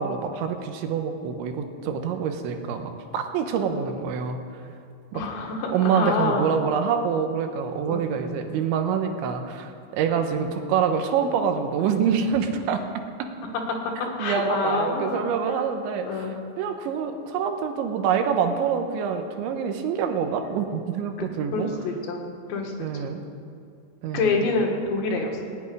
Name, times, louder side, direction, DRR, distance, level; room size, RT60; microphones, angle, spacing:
voice 1, 0.0-4.4 5.1-5.2 5.7-13.3 14.2-21.7 22.8-23.2 24.0-24.5, right 7 dB, 85° right, 6 dB, 3.5 m, -26 dB
voice 2, 5.1-6.5 7.9-8.1 14.2-15.6 16.0-16.3 21.2-21.3 21.5-23.2 24.1-25.4, left 3 dB, 80° left, 1 dB, 4.0 m, -27 dB
18.5 x 8.2 x 9.6 m, 2.4 s
omnidirectional pair, 5.1 m